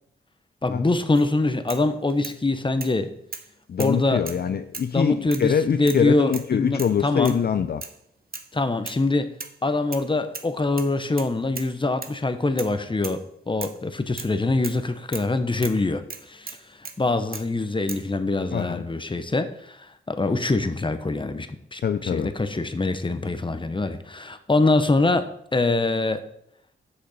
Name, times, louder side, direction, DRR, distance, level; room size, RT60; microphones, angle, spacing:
voice 1, 0.6-3.1 3.8-4.2 4.9-7.4 8.5-9.3 9.6-16.0 16.3-16.6 17.0-26.2, left 2 dB, 25° left, 9 dB, 0.9 m, -24 dB
Bike wheel coasting slow speed, 1.1-1.3 1.7-2.4 2.8-3.0 3.3-3.5 3.8-4.4 4.7-5.0 5.3-5.5 5.9-6.0 6.3-6.5 6.8-7.0 7.2-7.4 7.8-8.0 8.3-8.5 8.9-9.0 9.4-10.1 10.3-10.5 10.8-11.7 12.0-12.2 12.6-12.8 13.0-13.2 13.6-13.8 14.2-14.3 14.6-14.8 15.1-15.3 15.6-15.8 16.1-17.0 17.3-17.5 17.9-18.1, right 4 dB, 50° right, 1.0 m, -37 dB
voice 2, 3.7-7.8 18.5-18.8 21.8-22.3, left 7 dB, 55° left, 9 dB, 0.4 m, -24 dB
7.9 x 6.5 x 4.2 m, 0.72 s
cardioid pair, 50°, 20 cm